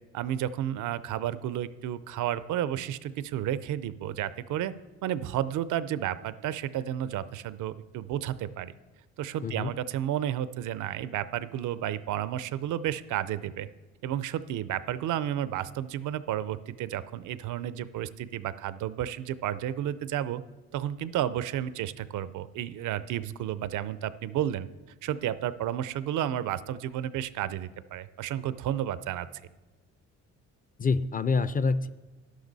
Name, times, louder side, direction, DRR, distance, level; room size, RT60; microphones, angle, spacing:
voice 1, 0.1-4.7 5.0-8.7 9.2-13.7 14.0-20.4 20.7-24.7 25.0-29.3, right 11 dB, 80° right, 15 dB, 0.6 m, -32 dB
voice 2, 30.8-31.9, left 4 dB, 30° left, 14 dB, 0.5 m, -26 dB
11.5 x 11.5 x 4.0 m, 1.2 s
cardioid pair, 90°, 30 cm